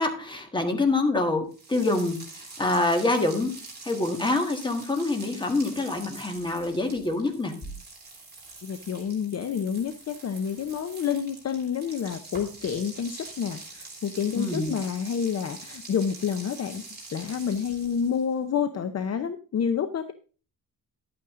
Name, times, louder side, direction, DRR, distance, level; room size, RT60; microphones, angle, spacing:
voice 1, 0.0-3.5 3.8-7.5 14.3-14.7, left 2 dB, 10° left, 4 dB, 1.6 m, -26 dB
sound 1, 1.5-18.3, right 3 dB, 25° right, 3.6 m, -45 dB
voice 2, 8.6-16.8 17.1-20.1, left 7 dB, 45° left, 10 dB, 0.6 m, -29 dB
11.0 x 8.6 x 3.7 m, 0.36 s
wide cardioid pair, 160°, 37 cm